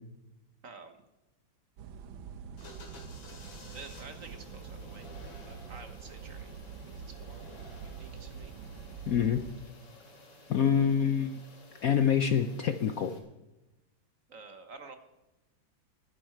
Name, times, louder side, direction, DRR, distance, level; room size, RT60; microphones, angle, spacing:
voice 1, 0.6-1.0 3.7-5.1 5.4-6.5 6.9-7.4 7.8-8.5 14.3-15.0, right 4 dB, 50° right, 8 dB, 1.3 m, -49 dB
sound 1, 1.8-9.5, right 6 dB, 90° right, 1.6 m, -45 dB
sound 2, 2.6-13.2, left 3 dB, 85° left, 3.1 m, -53 dB
voice 2, 9.1-9.4 10.5-11.4 11.8-13.1, left 8 dB, 65° left, 8 dB, 0.9 m, -26 dB
19.0 x 10.5 x 4.6 m, 1.0 s
omnidirectional pair, 2.1 m